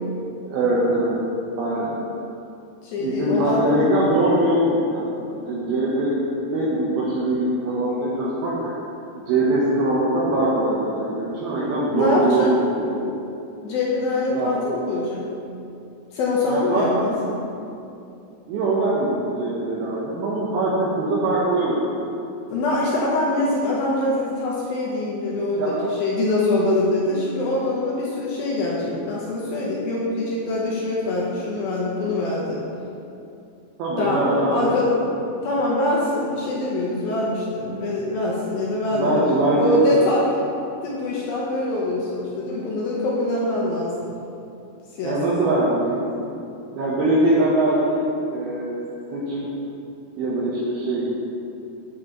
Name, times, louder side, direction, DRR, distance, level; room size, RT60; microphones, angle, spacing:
voice 1, 0.5-1.2 1.6-2.0 3.0-8.7 9.3-12.5 12.8-13.1 14.3-14.5 16.5-16.9 18.5-21.9 25.6-25.8 33.8-35.0 38.9-40.0 45.0-46.3 46.8-48.8 49.1-49.5 50.2-51.1, right 1 dB, 75° right, -7 dB, 2.6 m, -22 dB
voice 2, 2.8-3.7 11.9-12.5 13.6-15.3 16.1-17.3 22.5-32.6 34.0-34.9 35.4-40.3 40.8-44.1 45.0-45.2, left 2 dB, 75° left, -5 dB, 2.3 m, -24 dB
8.5 x 7.3 x 3.0 m, 2.7 s
omnidirectional pair, 4.9 m